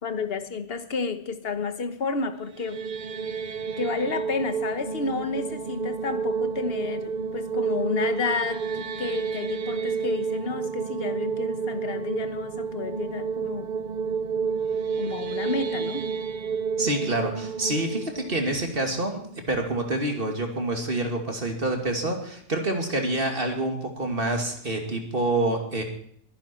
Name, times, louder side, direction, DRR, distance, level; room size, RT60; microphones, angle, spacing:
voice 1, 0.0-2.8 3.8-8.7 9.0-13.7 15.0-16.1, left 4 dB, 40° left, 10 dB, 1.3 m, -31 dB
sound 1, 2.4-19.6, right 5 dB, 60° right, 0.4 m, -30 dB
voice 2, 16.8-25.8, right 2 dB, 35° right, 3 dB, 2.5 m, -27 dB
22.0 x 10.5 x 4.5 m, 0.63 s
omnidirectional pair, 1.7 m